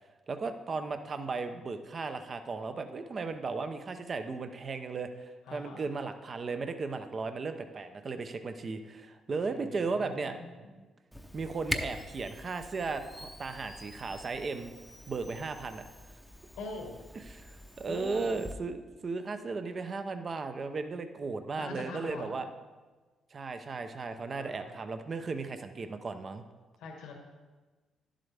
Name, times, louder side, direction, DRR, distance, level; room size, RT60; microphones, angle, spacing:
voice 1, 0.3-10.4 11.3-14.7 15.1-15.8 17.1-22.5 23.3-26.4, right 4 dB, 40° right, 8 dB, 0.6 m, -36 dB
voice 2, 5.5-5.8 9.9-10.3 16.6-17.0 17.9-18.4 21.6-22.3 24.3-24.7 26.8-27.1, left 3 dB, 90° left, 0 dB, 1.5 m, -42 dB
Camera, 11.1-18.5, left 1 dB, ahead, 0.7 m, -43 dB
11.0 x 7.5 x 3.4 m, 1.3 s
cardioid pair, 90°, 0 cm